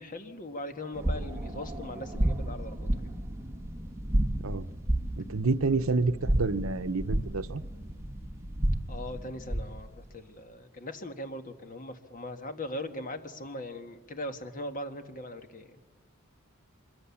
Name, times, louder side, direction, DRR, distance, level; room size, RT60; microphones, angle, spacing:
voice 1, 0.0-3.1 8.9-15.8, left 1 dB, 40° left, 7 dB, 1.6 m, -40 dB
sound 1, 0.9-9.8, right 1 dB, 15° right, 2.1 m, -32 dB
voice 2, 5.2-7.6, right 3 dB, 75° right, 12 dB, 0.9 m, -28 dB
25.0 x 22.5 x 7.2 m, 1.3 s
head